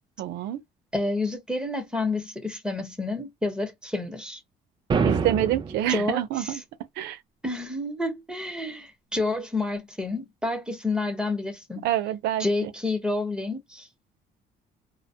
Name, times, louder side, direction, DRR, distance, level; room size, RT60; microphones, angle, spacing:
voice 1, 0.2-0.6 5.0-6.6 7.0-7.2 11.8-12.7, right 12 dB, 80° right, 0.6 m, -27 dB
voice 2, 0.9-4.4 5.9-6.6 7.4-11.9 12.4-13.9, left 2 dB, 5° right, 1.0 m, -29 dB
sound 1, 4.9-5.9, right 5 dB, 30° right, 0.4 m, -25 dB
2.1 x 2.1 x 2.8 m
cardioid pair, 110°, 17 cm